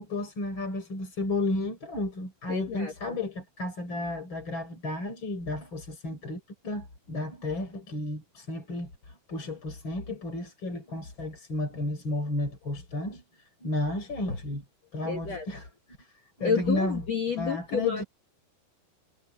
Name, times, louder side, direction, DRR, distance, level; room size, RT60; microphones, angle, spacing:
voice 1, 0.0-14.6 14.9-15.7 16.0-17.0 17.4-18.0, left 2 dB, 25° left, 5.2 m, -33 dB
voice 2, 2.5-3.2 15.0-15.4 16.4-18.0, left 6 dB, 50° left, 2.4 m, -30 dB
omnidirectional pair, 5.0 m